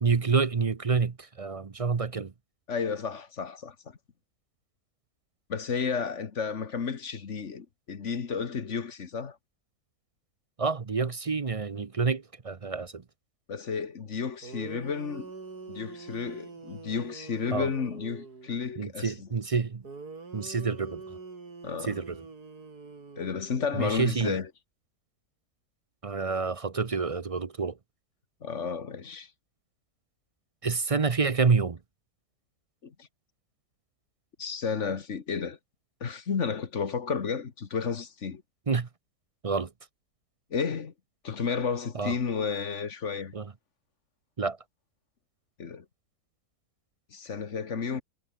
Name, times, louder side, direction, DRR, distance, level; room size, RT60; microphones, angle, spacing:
voice 1, 0.0-2.3 10.6-13.0 17.5-17.7 18.8-19.8 20.3-21.0 21.8-22.2 23.7-24.4 26.0-27.7 30.6-31.8 38.7-38.9 39.4-39.7 41.9-42.1 43.3-43.5 44.4-44.6, right 5 dB, 40° right, 0.5 m, -28 dB
voice 2, 2.7-4.0 5.5-9.4 13.5-15.3 15.7-19.3 21.6-22.0 23.2-24.5 28.4-29.3 32.8-33.1 34.4-35.6 36.0-38.4 40.5-40.9 41.2-43.3 45.6-45.9 47.1-48.0, left 6 dB, 50° left, 1.7 m, -32 dB
sound 1, 14.1-14.2 14.4-18.6 19.8-23.9, right 4 dB, 70° right, 3.8 m, -45 dB
omnidirectional pair, 1.7 m